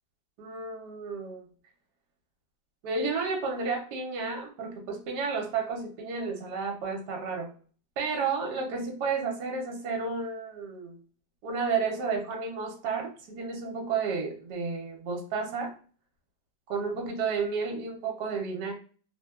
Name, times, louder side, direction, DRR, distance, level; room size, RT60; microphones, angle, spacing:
voice 1, 0.4-1.4 2.8-7.5 8.0-11.0 11.4-15.7 16.7-18.7, right 4 dB, 70° right, 1 dB, 1.2 m, -32 dB
3.2 x 2.1 x 2.3 m, 0.40 s
omnidirectional pair, 2.0 m